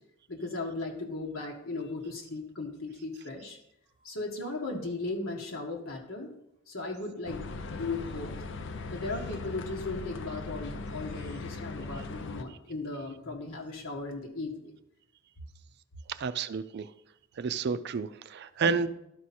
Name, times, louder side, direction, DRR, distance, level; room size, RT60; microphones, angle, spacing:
voice 1, 0.3-3.6 4.0-6.3 6.7-8.3 8.9-14.7 18.6-18.8, left 3 dB, 80° left, -1 dB, 1.5 m, -37 dB
sound 1, 7.2-12.4, left 3 dB, 60° left, 0.6 m, -39 dB
voice 2, 16.1-16.9 17.4-18.9, right 5 dB, 55° right, 13 dB, 0.4 m, -30 dB
12.0 x 4.7 x 4.3 m, 0.81 s
head